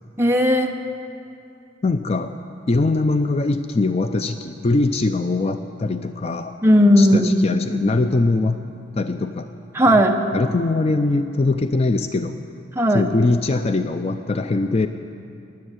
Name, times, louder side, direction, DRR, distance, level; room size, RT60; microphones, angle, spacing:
voice 1, 0.2-0.7 6.6-7.3 9.7-10.2 12.8-13.0, equal, 10° right, 2 dB, 0.9 m, -15 dB
voice 2, 1.8-2.3 2.7-6.6 7.0-8.6 9.0-9.5 9.9-10.0 10.3-12.4 12.9-14.9, left 3 dB, 30° left, 8 dB, 0.4 m, -21 dB
19.0 x 7.7 x 9.6 m, 2.6 s
head